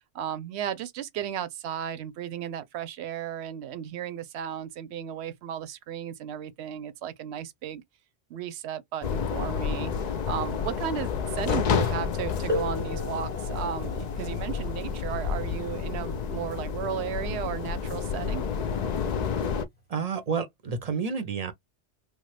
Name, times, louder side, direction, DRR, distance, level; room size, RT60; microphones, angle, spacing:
voice 1, 0.0-7.8 8.3-18.4, right 9 dB, 70° right, 0.8 m, -35 dB
sound 1, 9.0-19.6, left 6 dB, 55° left, 0.5 m, -30 dB
sound 2, 12.5-17.9 19.0-19.1 19.9-20.1, left 1 dB, 10° left, 0.8 m, -38 dB
voice 2, 19.9-21.5, right 5 dB, 45° right, 0.6 m, -30 dB
3.2 x 2.1 x 3.2 m
omnidirectional pair, 1.2 m